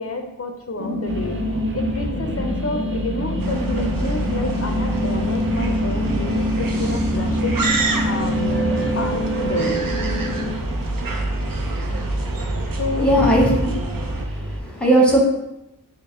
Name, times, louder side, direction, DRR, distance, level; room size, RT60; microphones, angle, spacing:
voice 1, 0.0-9.8 12.8-13.4, left 2 dB, 45° left, 5 dB, 0.4 m, -29 dB
sound 1, 0.8-10.5, left 1 dB, 55° right, 1.1 m, -26 dB
sound 2, 1.1-14.6, right 2 dB, 40° right, 0.5 m, -28 dB
sound 3, 3.4-14.2, right 2 dB, 90° right, 0.5 m, -28 dB
voice 2, 13.0-13.5 14.3-15.2, right 1 dB, 5° left, -2 dB, 0.9 m, -17 dB
4.1 x 2.0 x 3.4 m, 0.90 s
wide cardioid pair, 50°, 33 cm